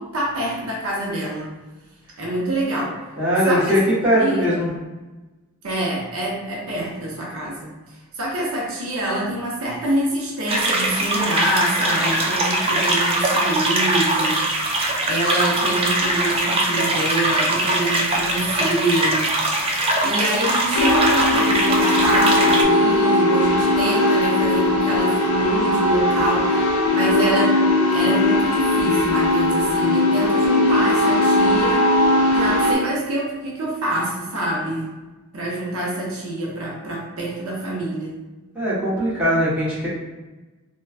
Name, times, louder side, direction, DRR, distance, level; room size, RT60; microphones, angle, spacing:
voice 1, 0.0-1.5 2.2-3.1 3.5-3.8 4.2-4.6 5.6-19.3 19.6-27.6 27.9-34.9 35.3-38.2, right 1 dB, 65° right, -3 dB, 0.6 m, -26 dB
voice 2, 3.2-4.7 38.5-39.9, equal, 5° right, -10 dB, 1.1 m, -20 dB
sound 1, 10.5-22.6, right 1 dB, 25° right, 0.4 m, -21 dB
sound 2, 20.8-32.7, left 1 dB, 75° left, 0.5 m, -19 dB
3.3 x 2.2 x 2.4 m, 1.2 s
head